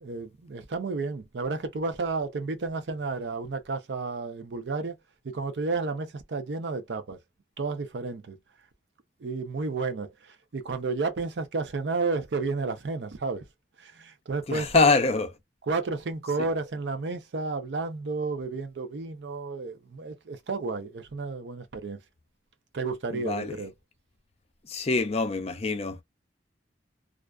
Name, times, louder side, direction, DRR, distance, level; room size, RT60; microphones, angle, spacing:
voice 1, 0.0-4.9 5.2-7.2 7.6-8.4 9.2-13.4 13.8-14.9 15.7-22.0 22.7-23.7, right 3 dB, 85° right, 0.5 m, -32 dB
voice 2, 14.5-15.3 23.1-23.6 24.6-26.0, left 3 dB, 35° left, 0.5 m, -25 dB
2.4 x 2.3 x 2.3 m
head